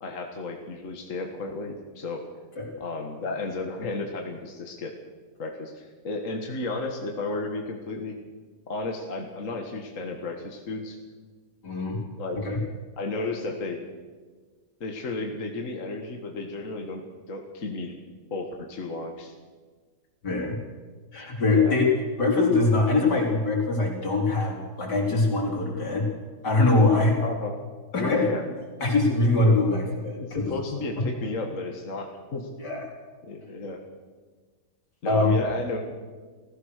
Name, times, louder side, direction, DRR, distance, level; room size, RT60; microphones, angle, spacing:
voice 1, 0.0-2.3 2.8-4.9 5.4-8.1 8.7-11.0 12.2-12.5 13.0-13.8 14.8-17.0 17.3-17.9 18.3-19.3 20.3-20.4 21.5-21.8 27.2-27.6 28.0-28.4 29.4-29.5 30.2-32.5 33.2-33.8 35.0-35.8, left 3 dB, 50° left, 3 dB, 2.0 m, -33 dB
voice 2, 11.6-12.0 12.3-12.6 20.2-20.5 21.1-21.8 22.2-26.1 26.4-27.2 27.9-28.3 28.8-30.5 32.6-32.8 35.1-35.4, left 2 dB, 80° left, 0 dB, 4.3 m, -23 dB
27.5 x 16.0 x 6.6 m, 1.4 s
omnidirectional pair, 1.8 m